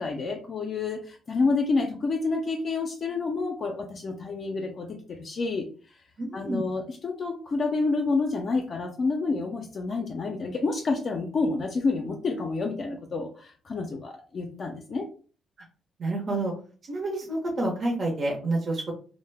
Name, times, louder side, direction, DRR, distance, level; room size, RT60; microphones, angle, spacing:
voice 1, 0.0-5.7 6.3-15.1, left 3 dB, 50° left, 2 dB, 0.4 m, -29 dB
voice 2, 6.2-6.7 16.0-16.5 16.9-18.9, right 2 dB, 45° right, -1 dB, 0.8 m, -28 dB
2.1 x 2.1 x 3.3 m, 0.39 s
cardioid pair, 90°, 0 cm